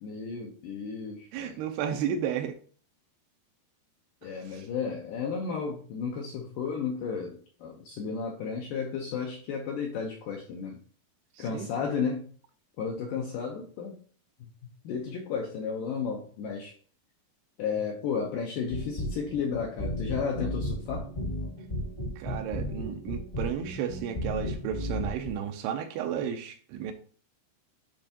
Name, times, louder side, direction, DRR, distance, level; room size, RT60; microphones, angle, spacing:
voice 1, 0.0-1.6 4.2-10.8 11.4-12.2 12.8-14.0 14.4-14.5 14.8-16.7 17.6-21.1, left 6 dB, 80° left, 2.0 m, -33 dB
voice 2, 1.3-2.6 4.5-4.7 11.5-11.7 22.2-26.9, right 8 dB, 80° right, 2.5 m, -33 dB
sound 1, 18.6-25.3, equal, 40° left, 0.8 m, -34 dB
10.0 x 3.5 x 2.8 m
omnidirectional pair, 4.8 m